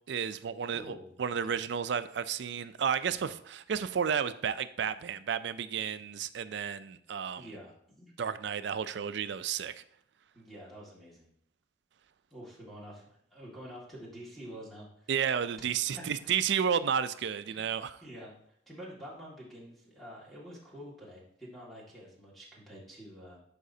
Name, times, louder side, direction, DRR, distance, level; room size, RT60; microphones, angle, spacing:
voice 1, 0.1-0.8 1.2-7.5 8.2-9.8 15.1-18.0, right 7 dB, 60° right, 0.4 m, -32 dB
voice 2, 0.7-1.6 7.4-8.1 10.3-11.3 12.3-15.1 16.2-16.3 17.5-17.7 18.0-18.4 18.7-23.4, equal, ahead, 1.9 m, -48 dB
11.0 x 4.9 x 2.7 m
head